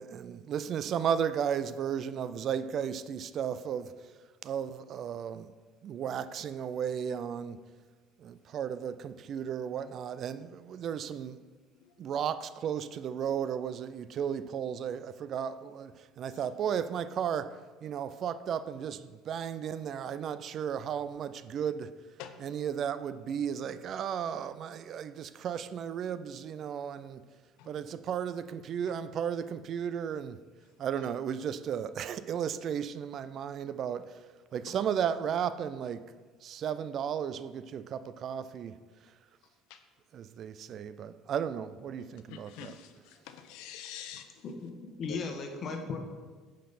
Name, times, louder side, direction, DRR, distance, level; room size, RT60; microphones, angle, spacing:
voice 1, 0.0-3.9 4.4-5.5 5.8-7.6 8.2-11.4 12.0-17.5 17.8-21.9 22.4-27.2 27.7-30.4 30.8-34.2 34.5-36.1 36.4-38.8 40.1-42.8, right 8 dB, 50° right, 0.4 m, -34 dB
voice 2, 42.3-44.3 45.1-45.2, left 10 dB, 80° left, 0.7 m, -46 dB
voice 3, 44.4-46.0, left 4 dB, 50° left, 1.3 m, -37 dB
9.1 x 5.3 x 4.2 m
supercardioid pair, 95°, 0 cm